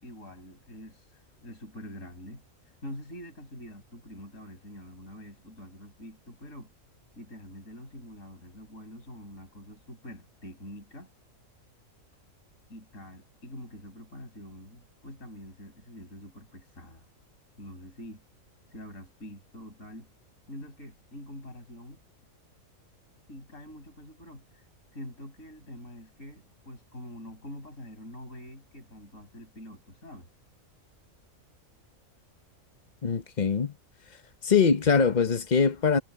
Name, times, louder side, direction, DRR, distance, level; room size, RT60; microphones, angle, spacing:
voice 1, 0.0-2.4 2.8-6.7 7.2-11.1 12.7-17.1 17.6-18.2 18.7-20.1 20.5-22.0 23.3-24.6 24.9-30.3, left 1 dB, 70° left, 7.0 m, -45 dB
voice 2, 33.0-33.7 34.4-36.0, left 5 dB, 35° left, 1.1 m, -23 dB
omnidirectional pair, 1.4 m